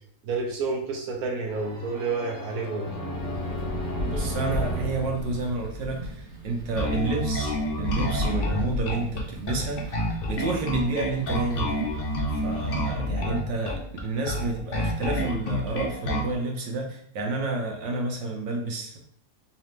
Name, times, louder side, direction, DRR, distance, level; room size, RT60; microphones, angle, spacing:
voice 1, 0.2-2.9, right 4 dB, 60° right, 0 dB, 1.1 m, -29 dB
sound 1, 1.5-6.2, equal, 15° right, 1.5 m, -34 dB
sound 2, 3.1-12.8, equal, 35° right, 0.7 m, -36 dB
voice 2, 4.0-11.8 12.3-19.0, right 3 dB, 80° right, 1 dB, 1.5 m, -30 dB
Bass guitar, 6.8-16.3, left 1 dB, 85° left, 0.5 m, -28 dB
4.0 x 2.9 x 3.2 m, 0.65 s
omnidirectional pair, 2.0 m